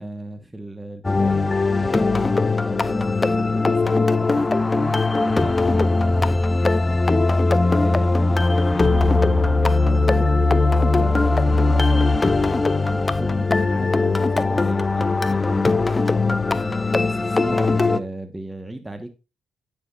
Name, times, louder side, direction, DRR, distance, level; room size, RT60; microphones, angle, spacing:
voice 1, 0.0-7.3 7.7-10.3 10.9-19.2, right 1 dB, 15° right, 1.2 m, -35 dB
sound 1, 1.0-18.0, left 3 dB, 25° left, 0.5 m, -19 dB
9.1 x 7.1 x 2.4 m
supercardioid pair, 60°, 0 cm